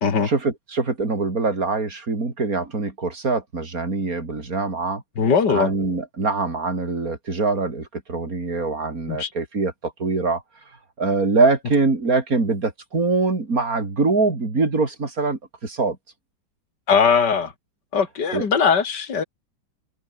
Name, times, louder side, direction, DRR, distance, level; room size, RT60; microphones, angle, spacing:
voice 1, 0.2-5.0 5.5-10.4 11.0-16.0 18.3-18.4, right 3 dB, 45° right, 4.3 m, -23 dB
voice 2, 5.2-5.7 9.1-9.3 16.9-17.5 17.9-19.2, left 6 dB, 60° left, 3.2 m, -20 dB
omnidirectional pair, 2.1 m